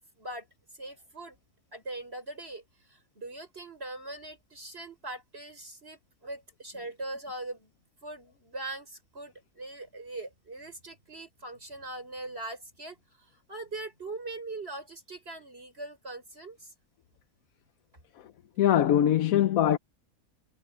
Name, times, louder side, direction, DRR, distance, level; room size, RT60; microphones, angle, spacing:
voice 1, 0.7-1.4 1.7-7.7 8.0-16.7, right 2 dB, 45° right, 5.8 m, -41 dB
voice 2, 18.6-19.8, left 11 dB, 90° left, 1.2 m, -22 dB
omnidirectional pair, 1.4 m